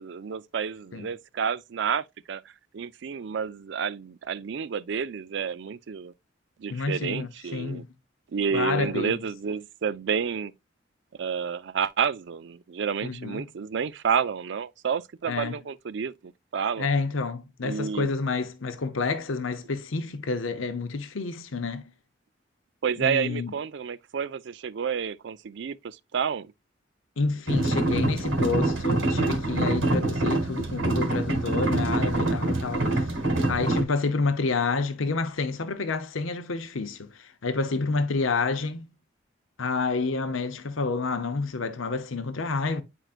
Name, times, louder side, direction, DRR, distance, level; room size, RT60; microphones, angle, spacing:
voice 1, 0.0-2.4 2.7-6.1 6.6-7.8 8.3-10.5 11.2-16.9 17.6-18.1 22.8-26.5, right 6 dB, 60° right, 0.4 m, -30 dB
voice 2, 6.7-7.9 8.5-9.2 13.0-13.5 15.3-15.6 16.8-21.9 23.0-23.5 27.2-33.1 33.5-38.9 39.6-42.8, left 4 dB, 90° left, 0.7 m, -29 dB
sound 1, 27.5-33.8, right 2 dB, 85° right, 1.5 m, -25 dB
8.9 x 4.6 x 2.4 m
head